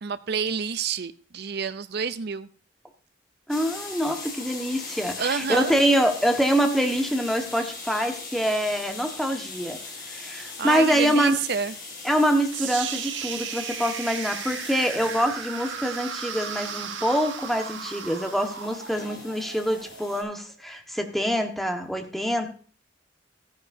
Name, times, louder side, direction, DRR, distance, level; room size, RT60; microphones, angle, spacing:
voice 1, 0.0-2.5 5.2-5.8 10.6-11.7, right 6 dB, 60° right, 0.6 m, -28 dB
sound 1, 3.5-20.2, left 3 dB, 50° left, 5.1 m, -40 dB
voice 2, 3.5-9.8 10.1-11.4 12.0-22.5, equal, ahead, 1.5 m, -25 dB
sound 2, 12.5-20.6, right 7 dB, 85° right, 1.2 m, -36 dB
14.5 x 10.5 x 2.7 m
head